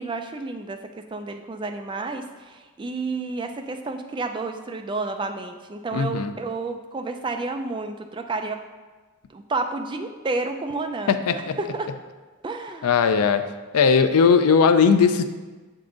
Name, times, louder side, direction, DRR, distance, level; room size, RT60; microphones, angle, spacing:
voice 1, 0.0-8.6 9.3-11.9 12.4-12.9, right 3 dB, 20° right, 6 dB, 0.3 m, -31 dB
voice 2, 5.9-6.3 11.1-11.6 12.8-13.4 13.7-15.2, left 6 dB, 85° left, 10 dB, 0.4 m, -18 dB
7.8 x 3.7 x 3.8 m, 1.3 s
head